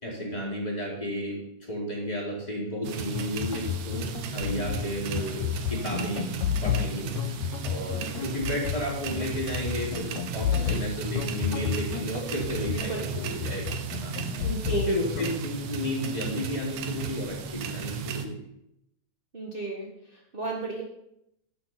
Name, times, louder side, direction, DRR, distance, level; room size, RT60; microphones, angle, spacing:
voice 1, 0.0-6.2 6.6-7.1 7.6-13.7 14.0-14.1 14.7-18.4, equal, 15° left, -3 dB, 4.2 m, -32 dB
sound 1, 2.8-18.3, right 6 dB, 85° right, 2.4 m, -35 dB
sound 2, 3.0-15.4, left 9 dB, 80° left, 1.9 m, -32 dB
voice 2, 12.6-13.0 14.2-14.9 19.3-20.8, right 2 dB, 45° right, -3 dB, 0.7 m, -35 dB
11.5 x 6.9 x 5.7 m, 0.81 s
omnidirectional pair, 3.3 m